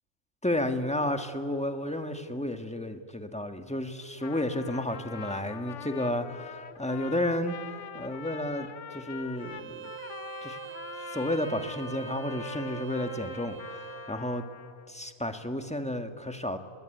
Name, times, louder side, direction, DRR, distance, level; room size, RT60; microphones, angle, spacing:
voice 1, 0.4-7.6 7.9-8.7 8.9-9.9 10.4-10.6 11.1-14.4 14.9-16.6, left 1 dB, 5° left, 6 dB, 1.5 m, -32 dB
Trumpet, 4.0-14.9, left 8 dB, 60° left, 1.1 m, -44 dB
Bowed string instrument, 9.4-14.2, right 11 dB, 85° right, 1.5 m, -43 dB
29.5 x 21.5 x 9.1 m, 2.2 s
omnidirectional pair, 1.6 m